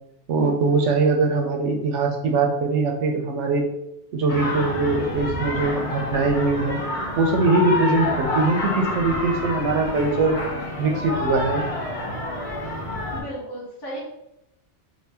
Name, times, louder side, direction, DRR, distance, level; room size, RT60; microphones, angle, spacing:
voice 1, 0.3-3.7 4.1-6.8 7.2-10.4 10.8-11.6, right 3 dB, 90° right, 3 dB, 0.9 m, -22 dB
sound 1, 4.3-13.2, left 1 dB, 40° left, 0.5 m, -28 dB
voice 2, 13.1-14.0, right 1 dB, 20° left, -5 dB, 0.9 m, -34 dB
2.8 x 2.5 x 3.3 m, 0.82 s
omnidirectional pair, 1.2 m